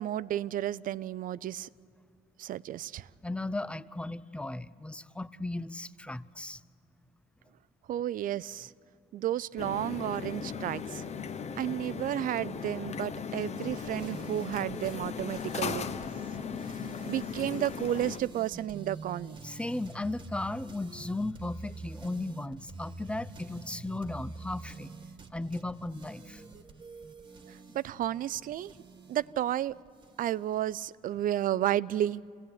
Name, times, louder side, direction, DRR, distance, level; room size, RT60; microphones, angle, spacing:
voice 1, 0.0-1.7 2.4-3.1 7.9-8.7 9.1-11.0 11.5-15.9 16.8-19.4 27.5-28.7 29.1-29.8 30.2-32.2, right 12 dB, 55° right, 20 dB, 0.5 m, -32 dB
voice 2, 3.2-6.6 19.4-24.9 25.3-26.4, left 2 dB, 5° left, 16 dB, 0.5 m, -36 dB
sound 1, 9.6-18.2, left 6 dB, 40° left, 1.1 m, -37 dB
sound 2, 13.7-30.9, right 3 dB, 25° right, 1.5 m, -47 dB
26.5 x 17.0 x 9.6 m, 2.5 s
cardioid pair, 110°, 17 cm